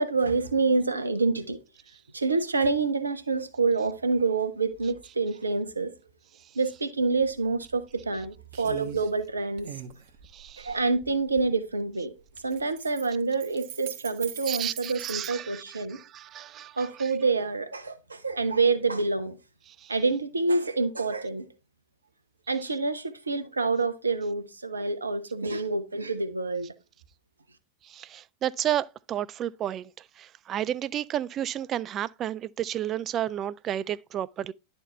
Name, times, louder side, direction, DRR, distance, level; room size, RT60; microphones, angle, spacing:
voice 1, 0.0-1.6 2.1-5.9 6.5-9.7 10.6-12.1 12.4-16.0 16.8-19.4 19.9-21.5 22.5-26.7, right 3 dB, 80° right, 0.8 m, -27 dB
sound 1, 7.2-7.3 7.7-8.2 8.5-9.1 9.6-11.5 12.3-15.3, right 10 dB, 50° right, 0.8 m, -41 dB
voice 2, 10.3-10.8 14.5-17.1 19.7-19.9 27.8-29.9 30.2-34.5, right 11 dB, 30° right, 0.3 m, -32 dB
10.5 x 4.3 x 3.2 m
figure-of-eight pair, 90°, 0 cm